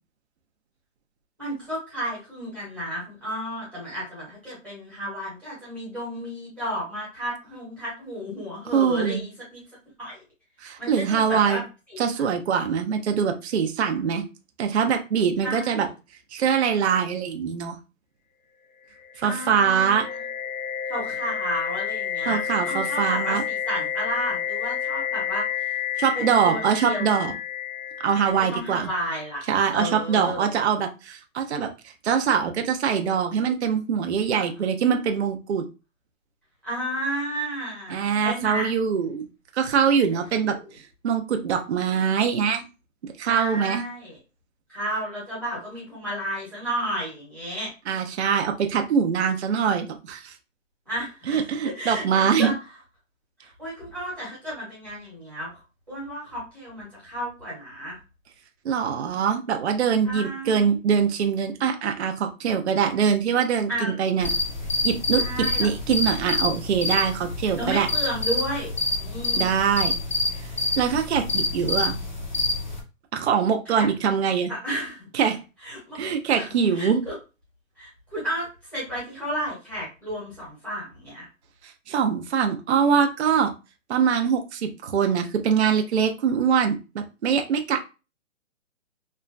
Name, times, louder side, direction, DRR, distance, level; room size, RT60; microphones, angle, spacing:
voice 1, 1.4-9.6 10.0-10.2 10.8-11.6 11.9-12.2 15.4-15.9 19.2-20.2 20.9-25.7 26.1-27.3 28.2-29.4 29.7-30.5 34.3-34.4 36.6-38.7 40.1-40.6 43.2-44.2 44.7-47.7 50.9-52.5 53.4-55.5 55.9-58.0 60.0-60.7 63.7-64.0 65.1-65.7 67.5-68.7 69.0-69.6 73.6-73.9 74.6-75.1 75.6-76.0 76.3-77.2 77.8-81.3, equal, 10° right, -8 dB, 0.9 m, -32 dB
voice 2, 8.7-9.2 10.6-11.6 12.0-14.2 14.6-15.9 16.3-17.8 19.2-20.0 22.3-23.4 26.0-27.3 28.0-28.9 29.5-35.7 37.9-39.3 39.5-40.6 41.0-42.6 43.0-43.8 47.9-50.3 51.3-52.5 58.6-64.3 64.8-67.9 69.4-69.9 70.4-70.5 70.8-72.0 73.1-74.5 75.1-75.4 75.9-77.0 81.6-83.5 83.9-87.8, right 7 dB, 55° right, 5 dB, 0.5 m, -23 dB
sound 1, 19.0-28.9, left 9 dB, 90° left, 0.8 m, -30 dB
sound 2, 64.2-72.8, left 2 dB, 40° left, 0.4 m, -27 dB
2.9 x 2.2 x 2.4 m, 0.30 s
hypercardioid pair, 175°, 40 cm